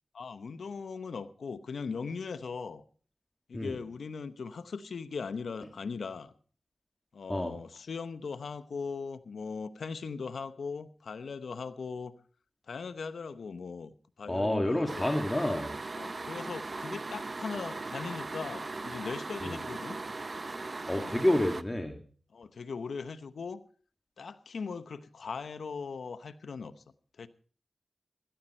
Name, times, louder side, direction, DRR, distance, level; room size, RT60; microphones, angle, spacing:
voice 1, 0.1-2.8 3.5-6.3 7.1-12.1 12.7-13.9 14.2-15.1 16.0-20.0 20.9-21.2 22.3-23.6 24.2-26.7 27.2-27.3, left 5 dB, 85° left, 0.8 m, -39 dB
voice 2, 14.3-15.8 19.4-19.6 20.9-22.0, left 1 dB, 20° left, 2.2 m, -29 dB
sound 1, 14.9-21.6, right 3 dB, 50° right, 0.7 m, -38 dB
16.5 x 13.5 x 4.3 m
cardioid pair, 50°, 0 cm